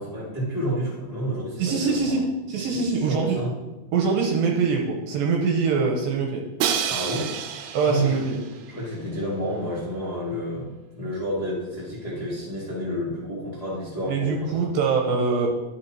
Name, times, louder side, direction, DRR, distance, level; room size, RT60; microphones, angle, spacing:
voice 1, 0.0-2.2 2.7-3.5 6.9-7.3 7.8-8.2 8.7-14.6, equal, 15° left, -8 dB, 1.2 m, -30 dB
voice 2, 1.6-3.4 3.9-6.4 7.7-8.4 14.1-15.5, right 5 dB, 70° right, 0 dB, 2.6 m, -23 dB
Crash cymbal, 6.6-8.6, right 8 dB, 90° right, 2.7 m, -28 dB
11.5 x 6.0 x 2.9 m, 1.1 s
omnidirectional pair, 4.7 m